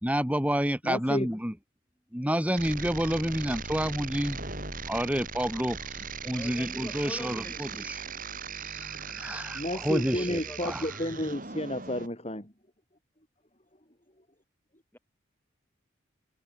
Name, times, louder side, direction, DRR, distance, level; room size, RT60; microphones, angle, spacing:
voice 1, 0.0-1.5 2.1-4.4 4.9-5.8 6.2-8.0 8.6-10.8, equal, 5° right, 4.5 m, -29 dB
voice 2, 0.8-1.3 9.5-12.5, left 1 dB, 30° left, 6.3 m, -31 dB
sound 1, 2.6-12.1, right 5 dB, 45° right, 5.2 m, -39 dB
voice 3, 6.3-7.8 9.8-11.1 14.9-15.0, left 1 dB, 10° left, 5.4 m, -44 dB
head